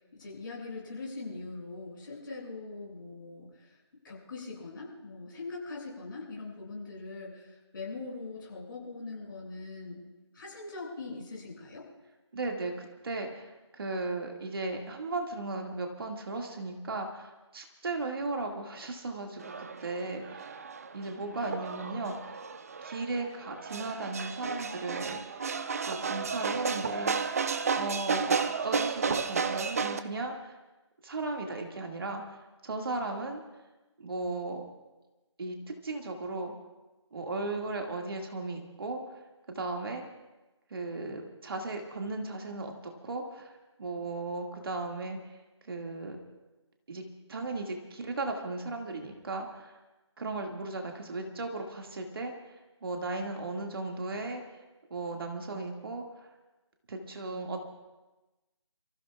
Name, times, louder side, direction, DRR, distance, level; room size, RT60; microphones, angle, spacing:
voice 1, 0.1-3.5 4.0-7.5 7.7-10.0 10.3-11.9, left 3 dB, 45° left, -3 dB, 6.8 m, -41 dB
voice 2, 12.3-20.5 20.9-22.4 22.8-25.2 25.8-27.4 27.7-28.4 28.6-30.6 31.0-32.4 32.6-33.4 34.0-34.7 35.4-35.6 35.8-36.5 37.1-39.0 39.5-40.0 40.7-45.4 45.6-46.2 46.9-47.0 47.3-49.8 50.2-52.6 52.8-54.6 54.9-56.3 56.9-57.6, right 2 dB, 50° right, 2 dB, 2.1 m, -36 dB
sound 1, 19.4-30.0, right 5 dB, 30° right, 0.6 m, -33 dB
30.0 x 15.5 x 2.4 m, 1.1 s
figure-of-eight pair, 160°, 16 cm